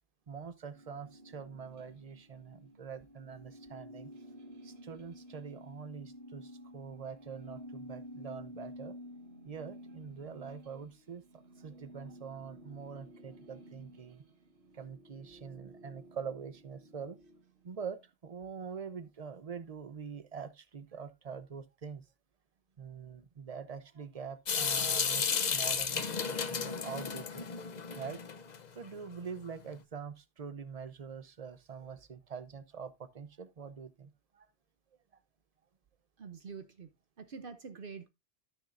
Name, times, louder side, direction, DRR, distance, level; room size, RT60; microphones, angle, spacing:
voice 1, 0.3-4.1 4.6-9.0 9.4-11.2 11.6-14.2 14.7-17.2 17.6-22.0 22.8-27.4 28.0-28.2 28.7-34.5, right 6 dB, 40° right, 0.8 m, -44 dB
sound 1, 0.7-18.0, equal, 80° right, 1.5 m, -52 dB
Water tap faucet / Sink (filling or washing) / Drip, 24.5-28.6, left 6 dB, 45° left, 0.8 m, -33 dB
voice 2, 36.2-36.9 37.2-38.1, right 5 dB, 60° right, 0.9 m, -46 dB
13.0 x 6.6 x 2.5 m
omnidirectional pair, 1.0 m